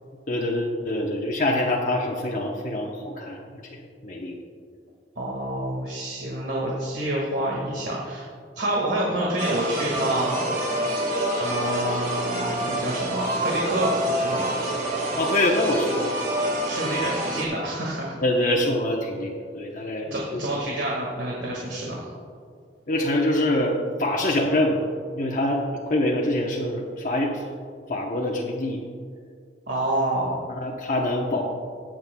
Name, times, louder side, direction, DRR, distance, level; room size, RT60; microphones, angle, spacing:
voice 1, 0.3-3.4 3.7-4.4 15.1-16.1 18.2-20.4 22.9-24.8 25.1-27.4 27.9-28.8 30.5-31.4, left 1 dB, 50° left, -2 dB, 0.9 m, -25 dB
voice 2, 5.2-8.3 8.6-10.5 11.4-14.6 16.7-18.2 20.1-22.1 29.7-30.4, right 1 dB, 80° right, -4 dB, 1.9 m, -28 dB
sound 1, 9.4-17.4, right 1 dB, 50° right, 1.9 m, -27 dB
20.5 x 7.6 x 2.3 m, 2.2 s
head